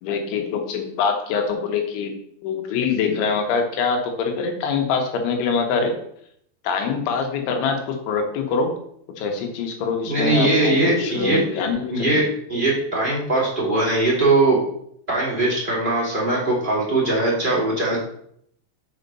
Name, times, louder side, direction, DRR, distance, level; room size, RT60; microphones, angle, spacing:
voice 1, 0.0-2.1 2.4-6.0 6.7-8.7 9.2-12.2, left 5 dB, 85° left, 4 dB, 3.6 m, -24 dB
voice 2, 10.0-11.4 11.9-12.2 12.5-14.6 15.1-18.0, right 2 dB, 20° right, -6 dB, 1.4 m, -20 dB
6.6 x 5.6 x 5.4 m, 0.69 s
omnidirectional pair, 5.3 m